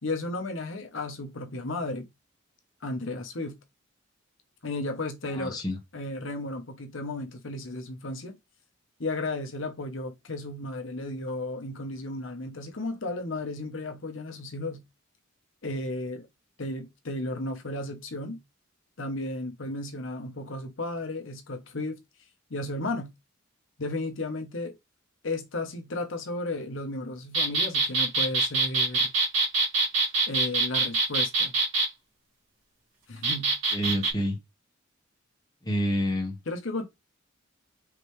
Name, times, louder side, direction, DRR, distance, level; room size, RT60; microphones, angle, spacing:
voice 1, 0.0-2.1 2.8-3.6 4.6-5.6 5.9-8.3 9.0-14.8 15.6-16.3 16.6-18.4 19.0-22.0 22.5-23.1 23.8-24.8 25.2-29.1 30.3-31.5 33.1-33.5 36.5-36.8, left 2 dB, 65° left, 1.0 m, -34 dB
voice 2, 5.3-5.8 33.7-34.4 35.6-36.4, equal, 20° left, 1.2 m, -28 dB
sound 1, 27.3-31.9 33.2-34.1, right 3 dB, 70° right, 2.5 m, -24 dB
5.0 x 3.1 x 3.2 m
head